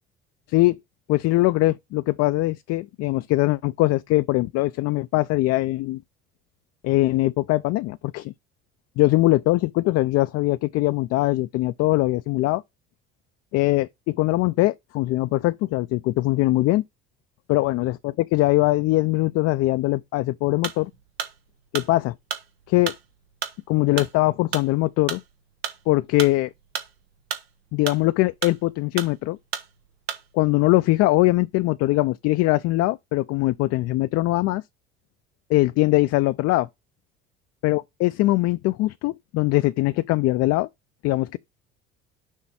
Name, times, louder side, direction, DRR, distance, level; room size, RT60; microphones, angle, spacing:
voice 1, 1.1-6.0 6.8-8.3 9.0-12.6 13.5-16.8 17.5-20.9 21.7-22.1 22.7-22.9 23.7-25.2 25.9-26.5 27.7-29.4 30.3-34.6 35.5-36.7 37.6-40.7 41.0-41.4, left 19 dB, 55° left, 0.5 m, -21 dB
sound 1, 20.6-30.4, right 8 dB, 90° right, 1.0 m, -33 dB
6.4 x 3.1 x 5.6 m
hypercardioid pair, 65°, 30 cm